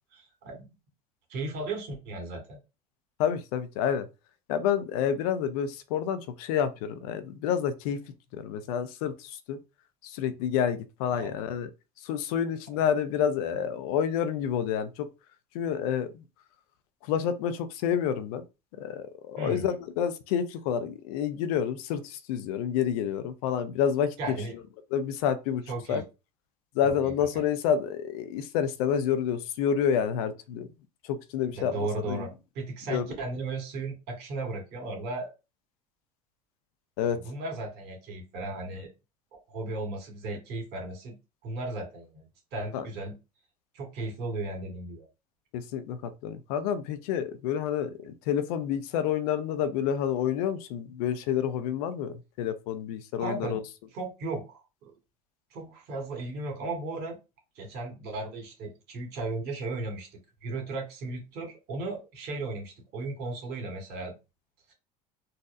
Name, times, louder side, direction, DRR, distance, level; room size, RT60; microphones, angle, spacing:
voice 1, 0.1-0.7 1.3-2.6 11.1-11.3 19.4-19.7 24.2-24.5 25.7-26.0 26.8-26.9 27.3-27.4 31.5-32.3 32.6-35.3 37.1-38.9 39.5-41.1 41.4-42.2 42.5-43.1 43.7-45.1 53.2-53.6 53.9-54.6 54.9-55.0 55.5-57.2 57.6-64.1, right 2 dB, 55° right, 1.9 m, -35 dB
voice 2, 3.2-4.1 4.5-8.0 8.3-9.6 10.0-11.7 12.0-15.1 15.5-16.2 17.0-18.4 18.8-24.2 24.9-25.6 25.9-26.0 26.7-30.7 31.0-32.3 32.9-33.0 37.0-37.2 42.7-42.9 45.5-53.6, left 8 dB, 70° left, 0.6 m, -29 dB
4.0 x 2.6 x 2.5 m
hypercardioid pair, 75°, 20 cm